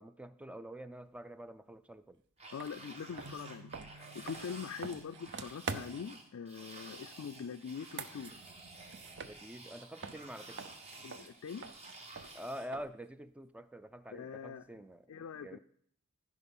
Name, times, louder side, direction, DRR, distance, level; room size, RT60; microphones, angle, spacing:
voice 1, 0.0-2.2 9.2-10.6 12.3-15.6, equal, 5° right, 13 dB, 0.3 m, -47 dB
sound 1, 2.4-12.7, right 2 dB, 30° right, 1.2 m, -52 dB
voice 2, 2.5-8.3 11.0-11.6 14.1-14.6 15.1-15.6, left 6 dB, 65° left, 6 dB, 0.4 m, -43 dB
sound 2, 2.6-2.7 3.1-6.2 7.7-9.8 10.0-13.1, right 5 dB, 55° right, 0.6 m, -46 dB
sound 3, 3.2-6.7, right 2 dB, 90° right, 0.9 m, -58 dB
15.0 x 5.1 x 5.4 m, 0.66 s
head